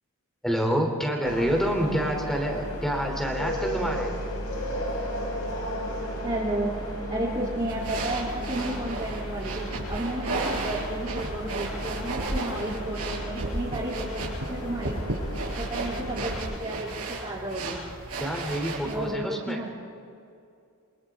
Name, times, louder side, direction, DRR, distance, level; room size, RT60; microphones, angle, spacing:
voice 1, 0.4-4.1 18.2-19.6, equal, ahead, 1 dB, 3.2 m, -27 dB
sound 1, 1.2-16.4, equal, 90° left, 6.0 m, -34 dB
voice 2, 6.2-15.0 15.6-17.8 18.8-19.8, right 1 dB, 30° right, -8 dB, 3.2 m, -32 dB
sound 2, 7.7-19.1, right 2 dB, 90° right, 5.9 m, -34 dB
28.5 x 25.0 x 3.7 m, 2.4 s
head